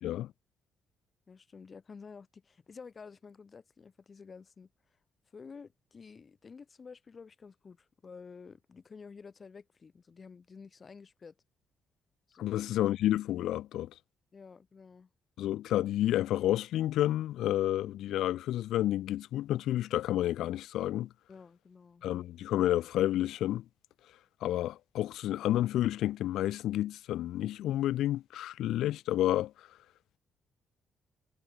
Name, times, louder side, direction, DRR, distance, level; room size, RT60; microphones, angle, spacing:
voice 1, 1.3-4.7 5.3-11.3 12.3-12.6 14.3-15.1 21.3-22.0, left 5 dB, 40° left, 5.1 m, -51 dB
voice 2, 12.4-13.9 15.4-21.1 22.0-23.6 24.4-29.5, left 13 dB, 85° left, 0.7 m, -30 dB
cardioid pair, 90°, 0 cm